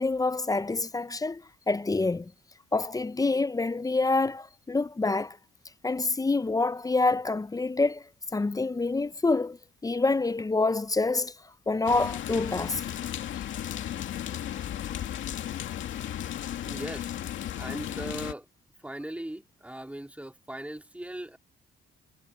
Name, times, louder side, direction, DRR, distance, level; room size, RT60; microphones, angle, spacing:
voice 1, 0.0-2.3 2.7-5.4 5.8-8.0 8.3-11.3 11.7-12.8, left 3 dB, 20° left, 0.6 m, -27 dB
sound 1, 11.9-18.3, left 11 dB, 75° left, 2.4 m, -35 dB
voice 2, 16.7-17.1 17.6-18.5 18.8-21.4, right 1 dB, 5° right, 3.6 m, -39 dB
cardioid pair, 90°, 20 cm